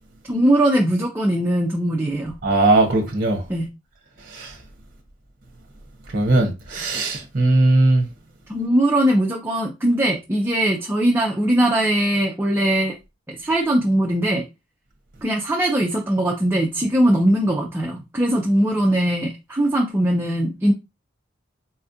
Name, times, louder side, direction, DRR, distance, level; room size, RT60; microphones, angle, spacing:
voice 1, 0.3-2.4 3.5-3.7 8.5-13.0 13.3-14.5 15.2-20.7, right 1 dB, 10° right, 0.4 m, -20 dB
voice 2, 2.4-3.4 4.3-4.5 6.1-8.1, right 2 dB, 45° right, 0.8 m, -18 dB
4.1 x 2.4 x 2.7 m
head